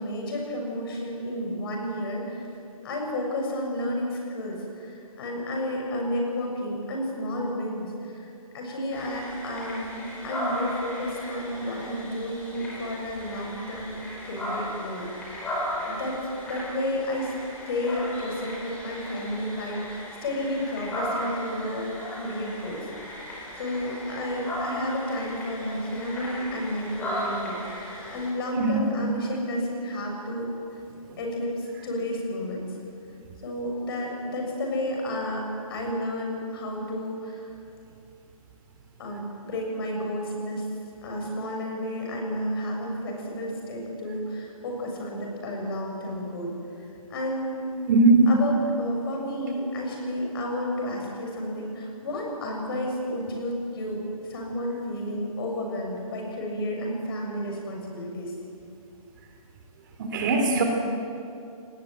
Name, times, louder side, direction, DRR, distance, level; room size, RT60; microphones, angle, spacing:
voice 1, 0.0-2.5 2.8-15.6 15.8-17.3 17.7-30.5 31.2-32.7 33.4-35.4 35.7-37.5 39.0-40.7 41.0-46.6 47.1-47.7 48.3-58.3, left 1 dB, 40° left, 0 dB, 7.1 m, -31 dB
sound 1, 8.9-28.3, equal, 10° left, 5.2 m, -36 dB
voice 2, 47.9-48.3 60.0-60.6, right 3 dB, 35° right, 3 dB, 3.0 m, -19 dB
26.5 x 19.5 x 9.1 m, 2.6 s
hypercardioid pair, 160°, 19 cm